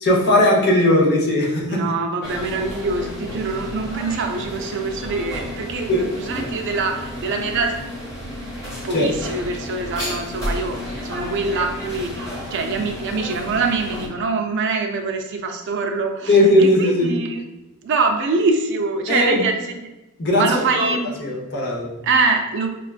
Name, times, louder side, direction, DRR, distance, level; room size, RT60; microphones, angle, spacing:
voice 1, 0.0-1.8 5.9-6.1 8.9-9.1 16.3-17.1 19.1-19.4 20.2-20.4 20.8-20.9 21.2-21.9, left 1 dB, 50° left, -2 dB, 0.8 m, -17 dB
voice 2, 1.7-7.8 8.8-10.8 11.0-17.4 17.8-19.9 20.4-21.1 22.0-22.7, right 4 dB, 55° right, 4 dB, 0.4 m, -24 dB
sound 1, 2.2-14.1, left 1 dB, 15° left, 1.1 m, -32 dB
5.0 x 2.3 x 2.4 m, 1.0 s
head